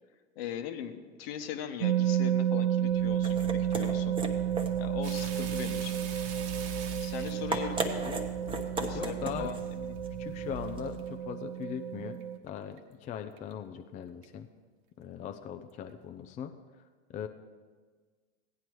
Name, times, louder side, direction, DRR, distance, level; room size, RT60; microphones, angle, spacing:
voice 1, 0.4-4.2 4.8-6.0 7.0-8.2 8.8-10.0, left 8 dB, 60° left, 8 dB, 1.0 m, -40 dB
sound 1, 1.8-12.4, right 10 dB, 75° right, 0.5 m, -31 dB
sound 2, 2.9-11.1, right 2 dB, 15° right, 0.9 m, -38 dB
sound 3, 5.0-8.7 9.2-9.6 10.0-10.1 10.5-11.1 11.6-11.7 12.2-12.3 12.5-12.8 13.4-13.5 14.2-14.3, right 7 dB, 55° right, 1.1 m, -44 dB
voice 2, 8.9-9.5 10.2-12.2 12.4-14.5 15.0-16.5 17.1-17.3, left 9 dB, 20° left, 6 dB, 0.4 m, -40 dB
16.0 x 9.6 x 3.1 m, 1.5 s
hypercardioid pair, 100°, 34 cm